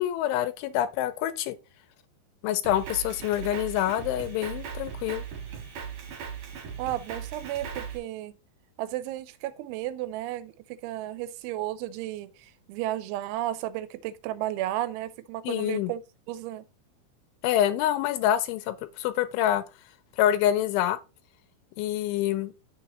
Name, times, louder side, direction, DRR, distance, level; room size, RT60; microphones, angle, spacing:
voice 1, 0.0-1.5 2.4-5.2 15.4-15.9 17.4-19.6 20.2-21.0 21.8-22.5, left 12 dB, 90° left, 3.1 m, -26 dB
Drum kit, 2.6-8.0, right 7 dB, 55° right, 2.6 m, -38 dB
voice 2, 6.8-8.4 8.8-16.0 16.3-16.6, right 14 dB, 85° right, 2.9 m, -33 dB
6.9 x 4.8 x 4.1 m
omnidirectional pair, 5.5 m